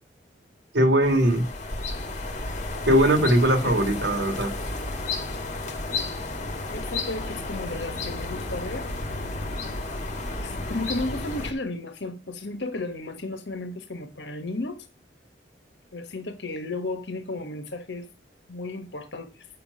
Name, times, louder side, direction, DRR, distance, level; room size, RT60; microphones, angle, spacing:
voice 1, 0.7-1.5 2.9-4.5, right 1 dB, 70° right, 2.8 m, -20 dB
sound 1, 1.0-11.5, left 2 dB, 40° left, 2.1 m, -32 dB
voice 2, 6.7-8.9 10.4-14.9 15.9-18.1 18.5-19.5, left 2 dB, 70° left, 1.4 m, -34 dB
8.6 x 6.9 x 5.6 m
head